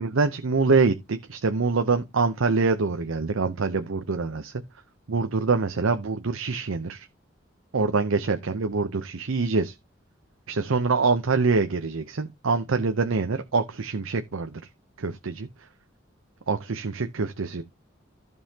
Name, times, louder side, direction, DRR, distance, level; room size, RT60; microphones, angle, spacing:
voice 1, 0.0-4.5 5.1-7.1 7.7-9.7 10.5-14.6 15.0-15.5 16.5-17.6, right 4 dB, 90° right, 0.7 m, -25 dB
14.5 x 5.4 x 2.8 m
head